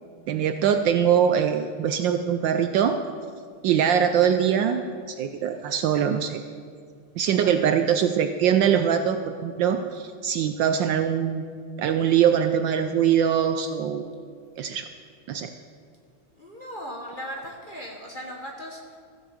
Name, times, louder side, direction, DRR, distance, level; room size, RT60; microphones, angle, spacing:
voice 1, 0.3-3.0 3.6-4.8 5.1-6.4 7.2-11.5 11.8-14.0 14.6-14.8 15.3-15.5, right 8 dB, 75° right, 8 dB, 1.1 m, -22 dB
voice 2, 16.3-19.0, equal, 30° left, 0 dB, 1.1 m, -38 dB
15.0 x 7.0 x 7.3 m, 2.1 s
omnidirectional pair, 2.3 m